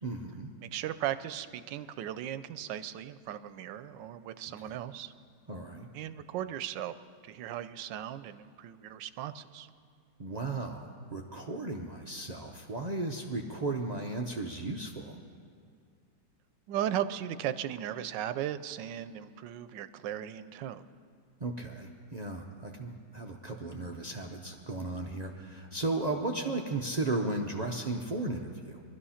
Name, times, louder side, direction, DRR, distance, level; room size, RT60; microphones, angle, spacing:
voice 1, 0.0-0.5 4.6-4.8 5.5-5.9 10.2-15.2 21.4-28.8, right 2 dB, 65° right, 0 dB, 0.4 m, -35 dB
voice 2, 0.6-5.1 5.9-6.9 7.2-9.7 16.7-20.9, right 11 dB, 85° right, 13 dB, 1.3 m, -37 dB
20.0 x 12.5 x 5.7 m, 2.2 s
omnidirectional pair, 1.9 m